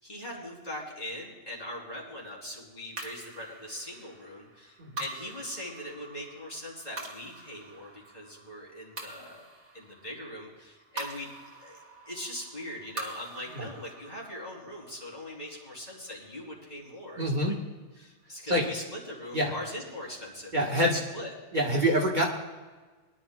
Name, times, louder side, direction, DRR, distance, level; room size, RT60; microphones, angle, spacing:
voice 1, 0.0-9.4 9.7-11.3 11.6-11.8 12.1-17.5 18.0-21.3, left 1 dB, 35° left, -3 dB, 3.6 m, -41 dB
sound 1, 3.0-17.5, right 2 dB, 75° right, 2.2 m, -46 dB
voice 2, 17.2-17.6 18.5-18.6 19.3-19.5 20.5-21.0 21.5-22.3, equal, 40° right, -2 dB, 1.6 m, -25 dB
23.0 x 11.5 x 2.3 m, 1.3 s
omnidirectional pair, 1.2 m